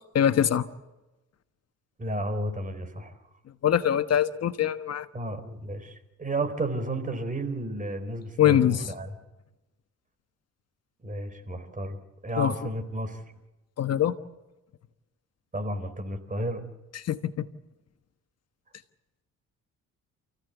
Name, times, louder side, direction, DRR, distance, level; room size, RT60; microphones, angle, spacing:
voice 1, 0.1-0.7 3.6-5.1 8.4-8.9 12.4-12.5 13.8-14.1 16.9-17.5, left 10 dB, 55° left, 10 dB, 1.3 m, -23 dB
voice 2, 2.0-3.1 5.1-9.1 11.0-12.0 12.2-13.2 15.5-16.6, right 1 dB, 25° right, 9 dB, 4.2 m, -32 dB
29.0 x 15.5 x 8.2 m, 1.0 s
cardioid pair, 90°, 30 cm